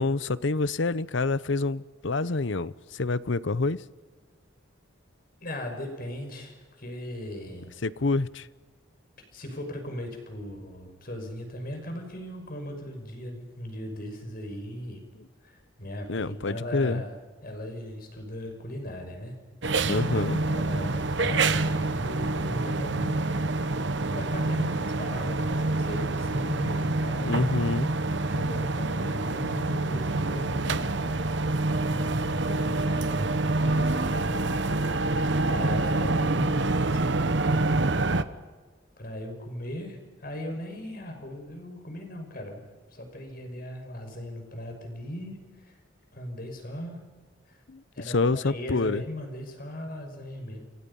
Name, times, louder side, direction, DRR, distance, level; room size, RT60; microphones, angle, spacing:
voice 1, 0.0-3.8 7.8-8.5 16.1-17.0 19.9-20.4 27.2-27.9 47.7-49.0, left 3 dB, 65° left, 0.8 m, -27 dB
voice 2, 5.4-7.7 9.3-15.0 15.4-17.2 17.4-19.3 20.4-23.3 24.1-27.5 28.3-30.9 31.9-34.4 35.5-37.4 39.0-42.6 42.9-45.8 46.1-47.0 47.5-47.6 47.9-50.6, equal, 45° left, 5.8 m, -38 dB
sound 1, 19.6-38.2, right 2 dB, 60° right, 1.1 m, -27 dB
29.0 x 27.0 x 5.5 m
head